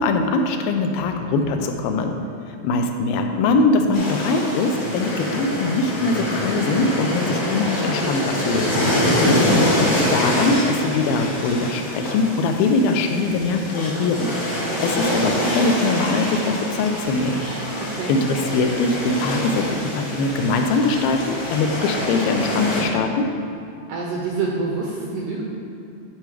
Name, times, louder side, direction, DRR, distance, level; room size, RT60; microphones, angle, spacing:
voice 1, 0.0-2.2 2.6-8.7 9.2-14.3 14.8-17.4 18.1-23.3, left 3 dB, 80° left, 5 dB, 2.3 m, -22 dB
sound 1, 3.9-22.8, equal, 50° left, 0.9 m, -25 dB
sound 2, 8.4-9.0 10.0-10.7 13.3-13.9 14.9-15.7 16.6-17.6 18.4-19.3 20.1-21.0, equal, 5° left, 0.6 m, -42 dB
voice 2, 9.0-9.3 17.9-18.2 23.9-25.4, right 4 dB, 80° right, -2 dB, 1.9 m, -27 dB
10.5 x 5.8 x 4.6 m, 2.5 s
omnidirectional pair, 4.5 m